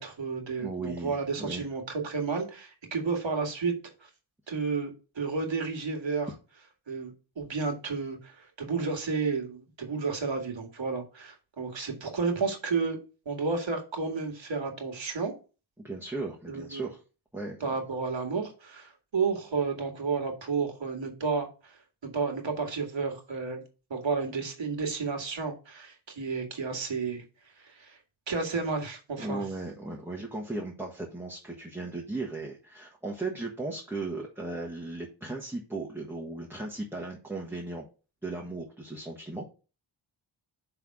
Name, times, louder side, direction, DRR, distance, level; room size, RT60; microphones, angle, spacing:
voice 1, 0.0-3.8 4.5-6.3 6.9-13.0 13.3-15.3 16.5-16.9 17.6-21.8 22.0-23.6 23.9-27.2 27.6-28.0 28.3-29.4, right 4 dB, 70° right, 2 dB, 2.0 m, -31 dB
voice 2, 0.6-1.7 15.8-17.0 17.3-17.8 29.2-37.9 38.2-39.5, right 2 dB, 5° right, -2 dB, 1.4 m, -36 dB
5.9 x 3.5 x 5.9 m, 0.33 s
wide cardioid pair, 80°, 47 cm